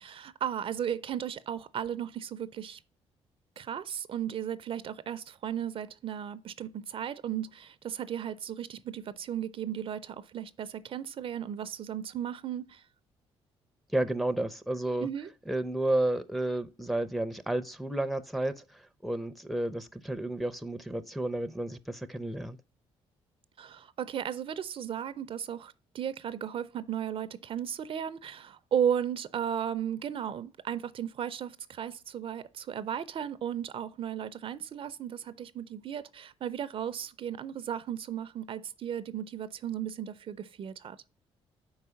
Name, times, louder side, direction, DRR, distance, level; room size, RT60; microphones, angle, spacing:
voice 1, 0.0-2.8 3.6-12.8 15.0-15.3 23.6-41.0, right 9 dB, 55° right, 0.5 m, -35 dB
voice 2, 13.9-15.1 15.5-22.6, right 1 dB, ahead, 0.5 m, -31 dB
4.7 x 4.7 x 5.6 m
cardioid pair, 85°, 11 cm